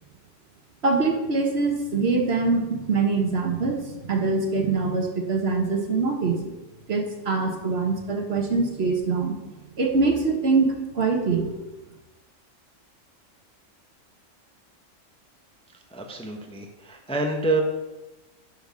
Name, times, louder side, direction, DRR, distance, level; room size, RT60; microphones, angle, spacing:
voice 1, 0.8-6.5 6.9-9.3 9.8-11.6, right 4 dB, 55° right, 3 dB, 1.4 m, -24 dB
voice 2, 15.9-17.6, right 3 dB, 5° left, 2 dB, 0.8 m, -27 dB
11.0 x 4.7 x 5.3 m, 1.1 s
omnidirectional pair, 1.3 m